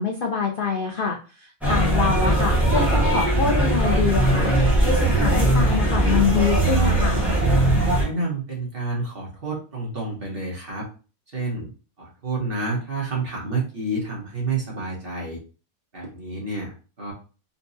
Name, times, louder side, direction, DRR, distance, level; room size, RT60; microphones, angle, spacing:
voice 1, 0.0-7.2, left 5 dB, 75° left, 1 dB, 0.4 m, -25 dB
sound 1, 1.6-8.0, right 1 dB, ahead, 0.9 m, -20 dB
voice 2, 8.0-10.9 11.3-11.7 12.0-15.4 15.9-17.1, right 3 dB, 45° right, -4 dB, 1.2 m, -29 dB
4.1 x 2.2 x 2.6 m, 0.36 s
omnidirectional pair, 1.5 m